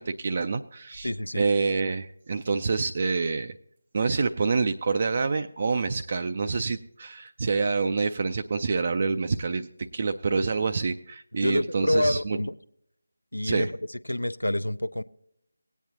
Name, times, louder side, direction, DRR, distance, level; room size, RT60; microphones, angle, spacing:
voice 1, 0.0-1.1 1.3-3.6 3.9-12.4 13.4-13.7, right 4 dB, 35° right, 7 dB, 0.4 m, -27 dB
voice 2, 1.0-1.5 11.4-12.5 13.3-15.0, left 1 dB, 85° left, 15 dB, 0.5 m, -27 dB
18.0 x 9.1 x 2.8 m, 0.72 s
figure-of-eight pair, 160°, 0 cm